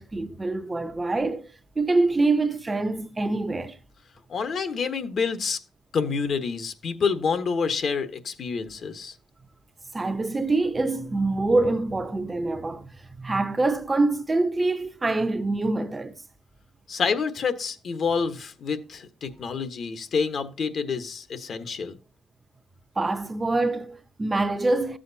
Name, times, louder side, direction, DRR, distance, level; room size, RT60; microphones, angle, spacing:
voice 1, 0.0-1.5 1.8-3.8 9.9-12.9 13.2-16.2 23.0-25.0, right 2 dB, 25° right, 0.7 m, -25 dB
voice 2, 4.3-5.6 5.9-9.1 16.9-21.9, left 5 dB, 55° left, 1.2 m, -28 dB
13.0 x 7.6 x 2.8 m
cardioid pair, 90°, 0 cm